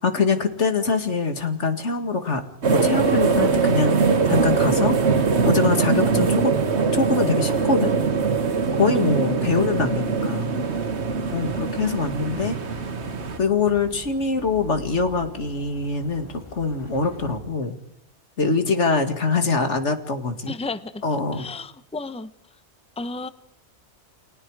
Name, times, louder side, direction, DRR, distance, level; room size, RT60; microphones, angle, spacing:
voice 1, 0.0-2.4 2.7-5.0 5.4-6.6 6.9-7.9 8.8-10.5 11.3-12.6 13.4-17.8 18.4-20.5 21.0-21.5, left 4 dB, 90° left, 7 dB, 2.4 m, -23 dB
sound 1, 2.6-13.4, right 5 dB, 70° right, 1.6 m, -22 dB
sound 2, 10.7-17.4, left 2 dB, 25° left, 3.2 m, -44 dB
voice 2, 20.5-21.0 21.3-22.3 23.0-23.3, left 3 dB, 5° left, 12 dB, 0.8 m, -32 dB
30.0 x 21.0 x 4.9 m, 0.74 s
omnidirectional pair, 1.2 m